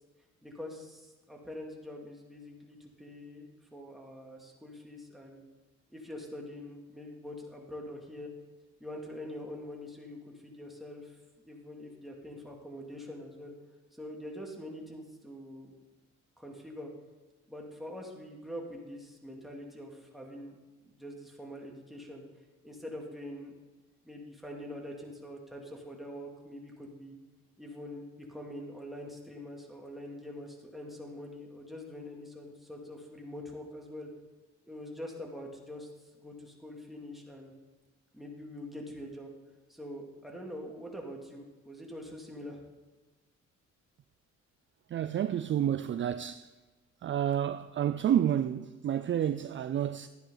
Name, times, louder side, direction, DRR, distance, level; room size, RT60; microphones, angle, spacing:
voice 1, 0.4-5.4 5.9-8.3 8.8-10.2 10.4-11.2 11.4-13.5 14.0-15.7 16.4-16.9 17.5-20.6 20.8-22.2 22.6-23.5 24.0-27.2 27.6-34.1 34.7-35.9 36.1-37.5 38.1-39.3 39.7-42.6, left 1 dB, ahead, 2.5 m, -44 dB
voice 2, 44.9-46.5 47.0-50.1, right 10 dB, 40° right, 0.4 m, -29 dB
13.0 x 9.9 x 3.9 m
cardioid pair, 90°, 30 cm